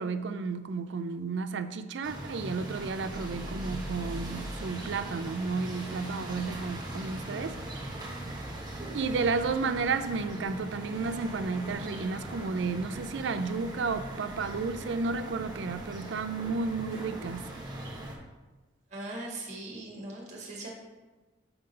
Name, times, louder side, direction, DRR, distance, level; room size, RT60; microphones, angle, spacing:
voice 1, 0.0-7.6 8.9-17.5, right 4 dB, 60° right, 0.4 m, -32 dB
sound 1, 2.0-18.2, right 1 dB, 20° right, 1.0 m, -40 dB
voice 2, 18.9-20.7, right 2 dB, 35° right, 1.6 m, -40 dB
6.9 x 3.7 x 5.2 m
head